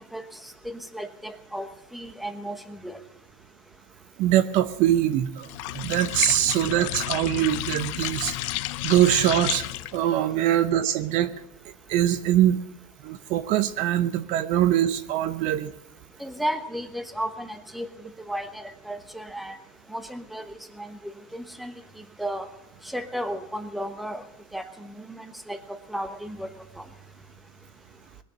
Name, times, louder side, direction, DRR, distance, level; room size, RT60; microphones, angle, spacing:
voice 1, 0.1-0.5 0.9-3.0 16.2-17.9 18.3-19.6 19.9-21.0 21.3-21.7 22.2-22.5 22.8-24.2 24.5-26.5 26.8-26.9, equal, ahead, 7 dB, 1.1 m, -34 dB
voice 2, 4.2-5.5 5.7-8.4 8.8-9.7 9.9-11.3 11.9-12.6 13.0-15.7, right 12 dB, 45° right, 12 dB, 0.7 m, -23 dB
sound 1, 5.4-10.1, left 18 dB, 65° left, 0.5 m, -31 dB
21.0 x 7.0 x 8.4 m, 0.84 s
supercardioid pair, 145°, 17 cm